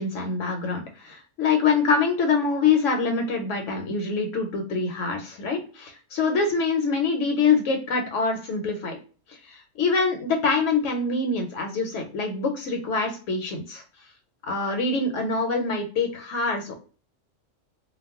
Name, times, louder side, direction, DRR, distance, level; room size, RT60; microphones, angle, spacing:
voice 1, 0.0-9.0 9.3-13.8 14.4-16.7, left 4 dB, 75° left, 4 dB, 0.9 m, -25 dB
2.2 x 2.1 x 3.5 m, 0.39 s
omnidirectional pair, 1.4 m